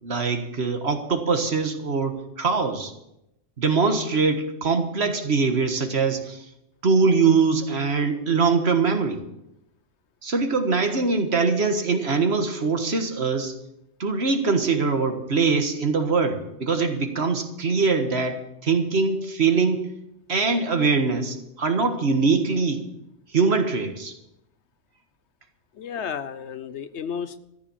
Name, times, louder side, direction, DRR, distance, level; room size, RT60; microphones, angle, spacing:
voice 1, 0.0-2.9 3.6-6.4 6.8-9.2 10.2-13.5 14.0-19.9 20.3-22.8 23.3-24.2, right 4 dB, 55° right, 6 dB, 1.7 m, -23 dB
voice 2, 25.8-27.4, left 7 dB, 65° left, 13 dB, 1.0 m, -32 dB
14.0 x 10.0 x 7.1 m, 0.84 s
omnidirectional pair, 1.3 m